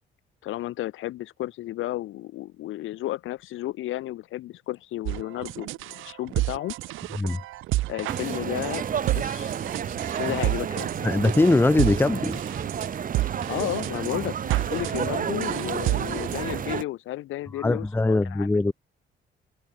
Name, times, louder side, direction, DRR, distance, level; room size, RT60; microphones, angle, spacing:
voice 1, 0.4-6.7 7.9-8.8 9.1-9.5 10.2-10.9 13.5-14.4 14.7-18.5, left 15 dB, 90° left, 2.9 m, -32 dB
sound 1, 5.1-16.6, right 17 dB, 85° right, 0.6 m, -31 dB
sound 2, 6.6-16.2, right 2 dB, 15° right, 5.5 m, -51 dB
sound 3, 8.1-16.8, right 8 dB, 45° right, 1.0 m, -31 dB
voice 2, 11.0-12.4 17.6-18.7, left 2 dB, 10° left, 0.8 m, -21 dB
cardioid pair, 90°, 20 cm